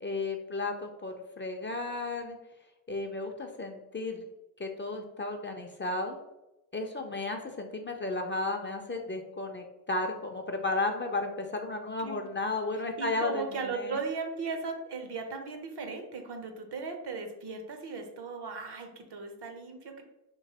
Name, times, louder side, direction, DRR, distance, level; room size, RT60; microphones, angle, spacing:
voice 1, 0.0-2.4 2.9-4.2 4.6-6.2 6.7-14.0, left 2 dB, 25° left, 4 dB, 0.4 m, -34 dB
voice 2, 12.0-12.5 12.7-20.0, right 4 dB, 60° right, 6 dB, 0.7 m, -37 dB
3.0 x 2.5 x 2.8 m, 0.95 s
supercardioid pair, 40°, 46 cm